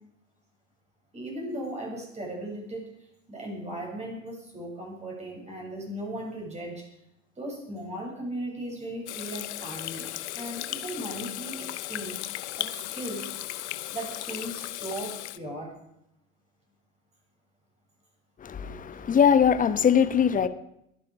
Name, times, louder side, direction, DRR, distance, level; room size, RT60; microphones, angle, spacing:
voice 1, 1.1-2.9 3.3-6.9 7.4-10.1 10.3-12.2 12.6-13.3 13.9-15.7, right 1 dB, 15° right, 7.4 m, -37 dB
Water tap faucet / Sink (filling or washing), 9.1-15.4, left 15 dB, 60° left, 1.0 m, -36 dB
voice 2, 18.4-20.5, left 7 dB, 20° left, 1.2 m, -21 dB
22.5 x 11.5 x 5.0 m
figure-of-eight pair, 90°, 39 cm